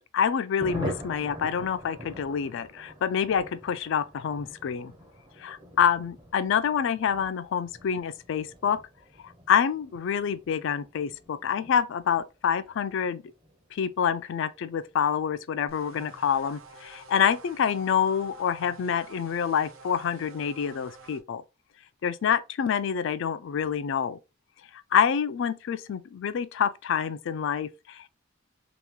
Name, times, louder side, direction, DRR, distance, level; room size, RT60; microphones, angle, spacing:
voice 1, 0.1-4.9 5.4-8.8 9.5-13.2 13.7-21.4 22.0-24.2 24.9-28.1, left 7 dB, 65° left, 0.3 m, -27 dB
Thunder, 0.6-16.7 17.0-17.1 17.4-17.5 17.8-18.2, equal, 20° right, 0.6 m, -44 dB
sound 1, 15.7-21.2, right 4 dB, 85° right, 0.7 m, -50 dB
2.9 x 2.3 x 3.5 m
head